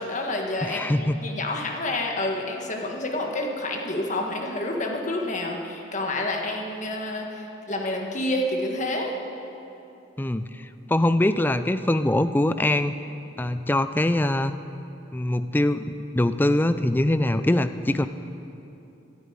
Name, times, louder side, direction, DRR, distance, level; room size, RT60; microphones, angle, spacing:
voice 1, 0.0-9.1, left 1 dB, 35° left, 1 dB, 1.5 m, -29 dB
voice 2, 0.6-1.2 10.2-12.9 13.4-14.5 15.1-18.1, left 1 dB, 10° left, 11 dB, 0.3 m, -23 dB
11.5 x 9.6 x 9.4 m, 2.9 s
head